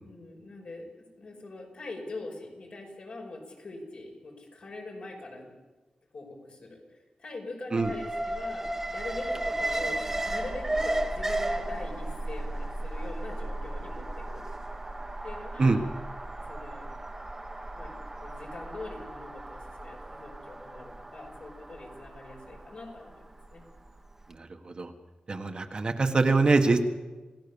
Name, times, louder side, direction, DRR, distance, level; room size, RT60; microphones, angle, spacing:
voice 1, 0.0-0.9 1.2-5.5 6.1-14.4 15.2-15.8 16.5-16.9 17.7-17.9 18.2-23.6, left 2 dB, 55° left, 1 dB, 5.8 m, -43 dB
Alarm, 7.8-23.9 24.2-24.3, right 1 dB, 15° right, 1.4 m, -35 dB
voice 2, 24.4-24.9 25.3-26.8, right 3 dB, 40° right, 5 dB, 1.6 m, -24 dB
27.5 x 17.0 x 7.1 m, 1.3 s
wide cardioid pair, 135°, 2 cm